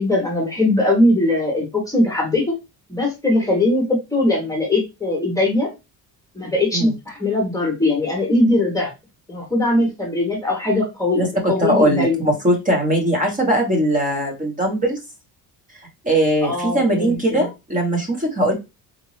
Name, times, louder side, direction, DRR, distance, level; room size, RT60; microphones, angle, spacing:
voice 1, 0.0-2.6 2.9-5.7 6.3-8.9 9.3-12.2 16.4-17.5, left 2 dB, 10° left, -1 dB, 1.0 m, -20 dB
voice 2, 11.6-15.0 16.0-18.5, right 1 dB, 20° right, 0 dB, 1.1 m, -20 dB
3.9 x 2.6 x 3.1 m, 0.24 s
cardioid pair, 170°, 38 cm